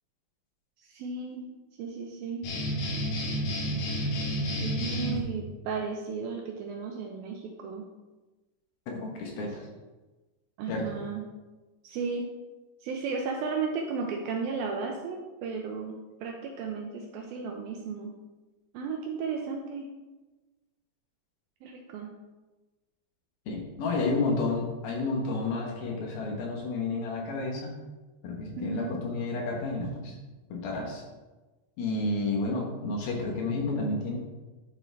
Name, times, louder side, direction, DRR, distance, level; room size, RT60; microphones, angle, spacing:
voice 1, 0.9-1.5 1.8-2.6 4.6-7.9 10.6-11.3 11.8-12.3 12.8-18.2 18.7-19.9 21.6-22.2 28.6-29.1, right 5 dB, 80° right, 2 dB, 2.2 m, -34 dB
sound 1, 2.4-5.2, equal, 90° left, 3.9 m, -30 dB
voice 2, 9.0-9.6 10.7-10.8 23.5-27.7 28.2-30.1 30.5-31.0 31.8-34.2, left 3 dB, 70° left, 0 dB, 3.0 m, -31 dB
10.5 x 7.0 x 3.4 m, 1.2 s
omnidirectional pair, 4.8 m